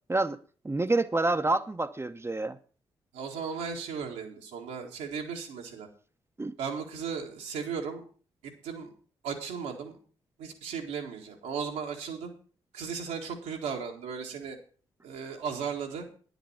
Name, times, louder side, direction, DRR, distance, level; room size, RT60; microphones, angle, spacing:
voice 1, 0.6-2.6 6.4-6.5, right 2 dB, 20° right, 0.8 m, -27 dB
voice 2, 3.1-5.9 6.6-8.0 8.4-8.9 9.2-10.0 10.4-12.3 12.7-14.6 15.0-16.1, right 6 dB, 80° right, 1.8 m, -36 dB
10.0 x 8.0 x 5.7 m
hypercardioid pair, 40°, 12 cm